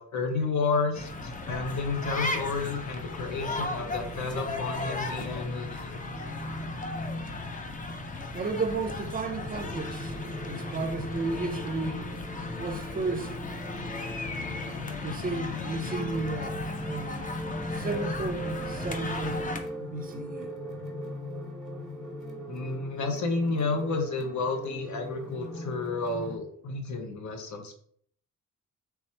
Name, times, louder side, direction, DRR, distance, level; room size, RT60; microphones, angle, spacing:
voice 1, 0.0-5.9 22.5-27.7, left 3 dB, 65° left, 0.9 m, -31 dB
sound 1, 0.9-19.6, left 2 dB, 25° left, 0.5 m, -35 dB
voice 2, 8.3-10.1 10.5-12.0 12.6-13.4 15.0-17.3 17.7-20.5, right 3 dB, 30° right, 0.5 m, -33 dB
sound 2, 9.4-26.4, equal, ahead, 1.4 m, -40 dB
3.4 x 3.0 x 4.3 m
wide cardioid pair, 130°, 31 cm